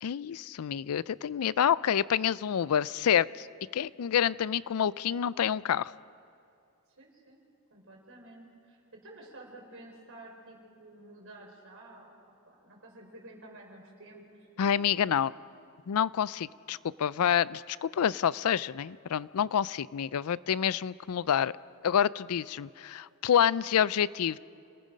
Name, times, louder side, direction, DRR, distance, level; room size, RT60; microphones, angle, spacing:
voice 1, 0.0-3.5 3.7-5.9 14.6-15.3 15.9-21.5 21.8-24.4, left 8 dB, 75° left, 20 dB, 0.4 m, -28 dB
voice 2, 7.0-7.4 7.7-12.1 12.5-15.0 16.4-16.5, right 2 dB, 65° right, 0 dB, 4.5 m, -51 dB
28.5 x 18.0 x 5.2 m, 2.6 s
head